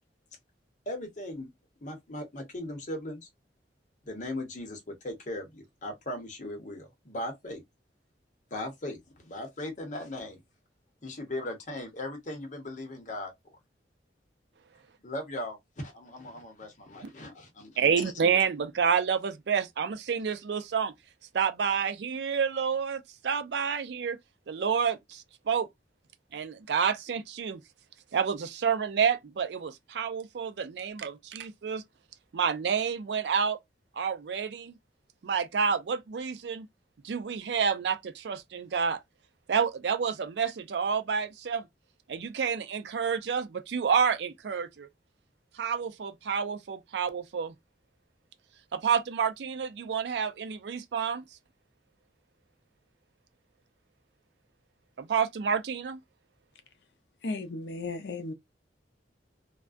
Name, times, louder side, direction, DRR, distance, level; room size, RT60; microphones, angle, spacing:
voice 1, 0.9-1.5 1.8-3.3 4.0-7.6 8.5-10.4 11.0-13.6 15.0-18.0, left 1 dB, 45° left, 0.9 m, -38 dB
voice 2, 17.8-20.9 21.3-24.2 24.5-25.7 26.3-27.6 28.1-31.8 32.3-33.6 34.0-34.7 35.2-36.7 37.0-39.0 39.5-41.6 42.1-44.9 45.6-47.5 48.7-51.2 55.0-56.0, right 6 dB, 75° right, 0.4 m, -29 dB
voice 3, 57.2-58.3, left 3 dB, 70° left, 0.5 m, -35 dB
2.3 x 2.1 x 2.4 m
head